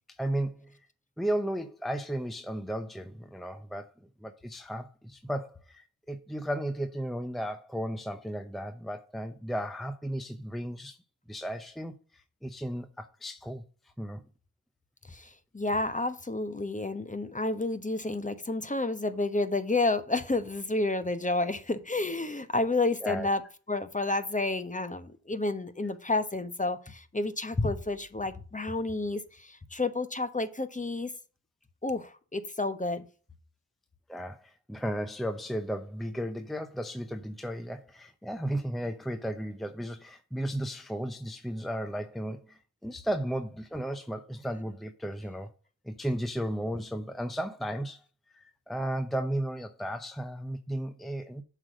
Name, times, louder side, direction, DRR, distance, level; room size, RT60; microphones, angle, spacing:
voice 1, 0.2-0.8 1.2-3.9 4.2-11.0 11.3-13.6 14.0-14.2 23.0-23.3 34.1-45.5 45.8-48.0 48.3-51.4, right 1 dB, ahead, 0.8 m, -34 dB
voice 2, 15.1-23.4 23.7-31.1 31.8-33.1, left 2 dB, 20° left, 1.1 m, -30 dB
7.6 x 4.9 x 6.2 m
cardioid pair, 55°, 38 cm